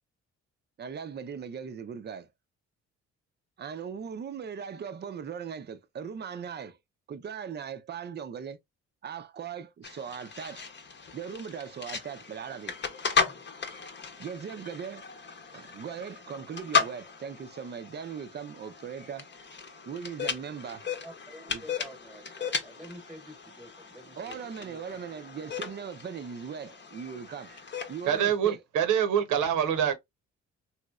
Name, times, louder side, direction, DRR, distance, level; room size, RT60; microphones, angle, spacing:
voice 1, 0.8-2.3 3.6-6.8 7.1-8.6 9.0-10.6 11.1-12.8 14.2-15.1 15.5-19.3 19.9-20.8 21.5-21.6 24.2-27.5 27.9-28.6, right 7 dB, 35° right, 0.5 m, -39 dB
sound 1, 9.8-28.2, left 6 dB, 35° left, 0.8 m, -36 dB
voice 2, 21.0-25.2, right 1 dB, ahead, 1.1 m, -49 dB
voice 3, 28.1-29.9, right 9 dB, 85° right, 0.8 m, -25 dB
3.1 x 3.0 x 2.3 m
cardioid pair, 90°, 30 cm